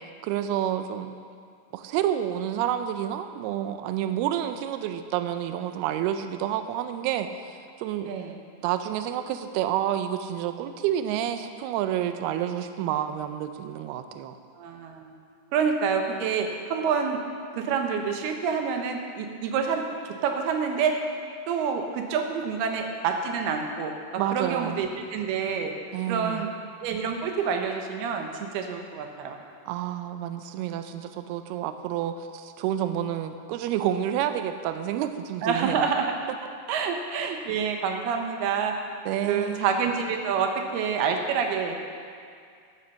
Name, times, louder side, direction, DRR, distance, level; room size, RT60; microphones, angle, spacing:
voice 1, 0.2-1.1 1.7-8.1 8.6-14.4 24.2-24.8 25.9-26.5 29.7-35.9 39.1-39.6, right 11 dB, 90° right, 8 dB, 2.2 m, -29 dB
voice 2, 14.6-15.1 15.5-17.2 17.5-20.9 21.5-23.9 24.3-25.7 26.1-26.5 26.8-29.4 35.4-36.1 36.7-38.7 39.3-41.8, right 6 dB, 70° right, 3 dB, 2.7 m, -27 dB
15.0 x 9.6 x 5.7 m, 2.2 s
omnidirectional pair, 5.2 m